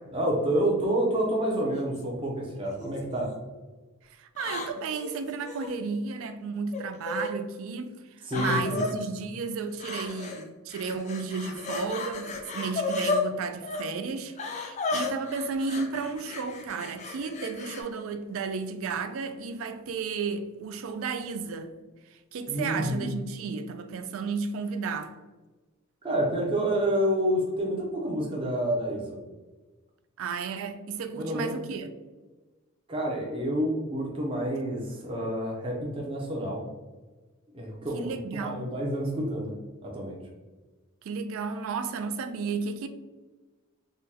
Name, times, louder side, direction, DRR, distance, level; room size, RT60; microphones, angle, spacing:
voice 1, 0.1-3.3 8.3-8.9 22.5-23.1 26.0-29.2 31.2-31.5 32.9-36.6 37.5-39.5 39.8-40.2, right 1 dB, 25° right, 0.6 m, -28 dB
sound 1, 1.7-2.0 2.8-3.3 4.4-5.7 6.7-7.3 8.3-8.9 9.8-10.4 10.7-13.2 13.6-13.8 14.4-17.8, left 3 dB, 30° left, 0.3 m, -33 dB
voice 2, 4.1-21.7 22.1-25.1 30.2-31.9 37.9-38.8 41.0-42.9, right 5 dB, 70° right, 0.3 m, -33 dB
3.6 x 2.1 x 2.7 m
head